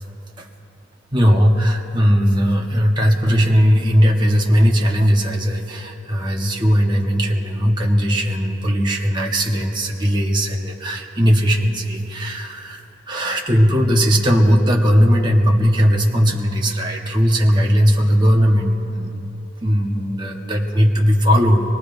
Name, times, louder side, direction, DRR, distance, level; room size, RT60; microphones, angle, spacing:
voice 1, 1.1-21.8, equal, 25° right, 0 dB, 1.2 m, -18 dB
25.0 x 20.5 x 2.6 m, 2.9 s
head